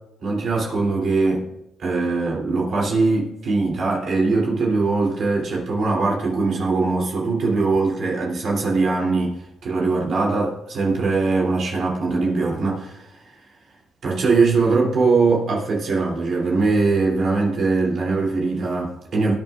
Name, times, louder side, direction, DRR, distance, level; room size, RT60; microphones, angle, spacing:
voice 1, 0.2-1.5 1.8-13.3 14.0-19.3, right 3 dB, 60° right, -3 dB, 3.0 m, -21 dB
20.0 x 8.5 x 2.5 m, 0.90 s
cardioid pair, 90°, 0 cm